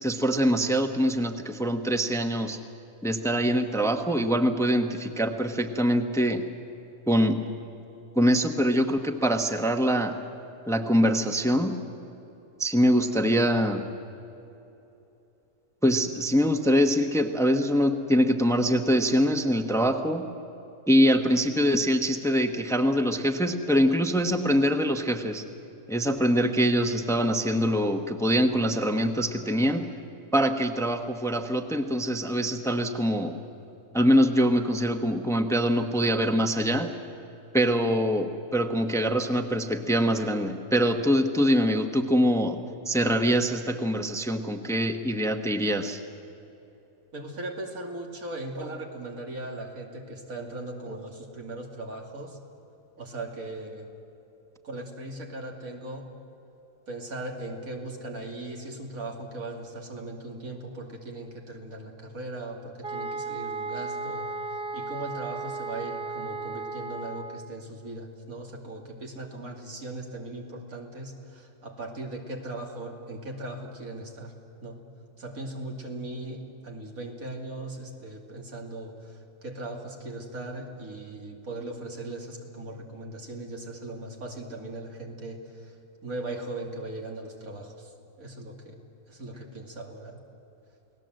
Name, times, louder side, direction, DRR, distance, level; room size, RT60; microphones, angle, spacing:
voice 1, 0.0-2.6 3.0-6.4 7.1-7.4 8.1-10.1 10.7-11.8 12.6-13.8 15.8-20.3 20.9-25.4 25.9-29.9 30.3-33.3 33.9-36.9 37.5-42.6 42.9-46.0, equal, ahead, 6 dB, 1.0 m, -24 dB
voice 2, 47.1-52.4 53.0-53.9 54.6-56.1 56.9-64.3 64.7-74.3 74.6-74.8 75.2-85.8 86.0-87.9 88.2-88.8 89.1-90.2, right 2 dB, 90° right, 1 dB, 3.0 m, -38 dB
sound 1, 62.8-67.5, right 3 dB, 45° right, 1.3 m, -35 dB
29.0 x 18.5 x 7.8 m, 2.9 s
omnidirectional pair, 1.4 m